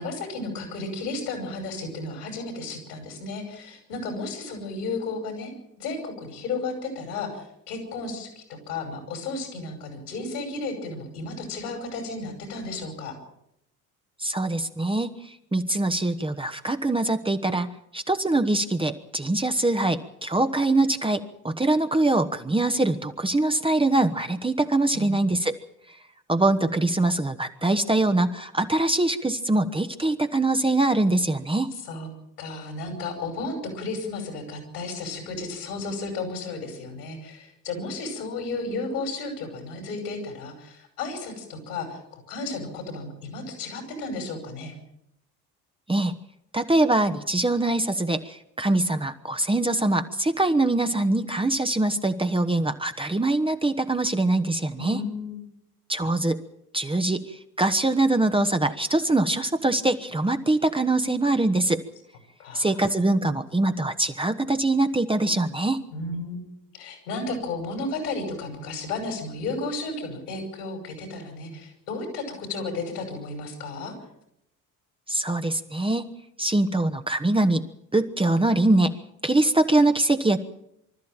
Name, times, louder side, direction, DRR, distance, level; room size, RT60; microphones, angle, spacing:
voice 1, 0.0-5.5 5.8-13.1 24.9-25.2 31.8-32.1 32.4-44.7 54.8-55.4 62.4-62.9 65.9-66.4 66.7-73.9, left 3 dB, 75° left, 5 dB, 5.7 m, -33 dB
voice 2, 14.2-15.1 15.5-25.6 26.3-31.7 45.9-46.2 46.5-55.0 55.9-56.4 56.7-57.2 57.6-61.8 62.5-65.8 75.1-76.0 76.4-77.7 77.9-79.0 79.2-80.4, right 2 dB, 10° right, 8 dB, 1.3 m, -23 dB
25.0 x 13.5 x 8.9 m, 0.79 s
figure-of-eight pair, 55°, 46 cm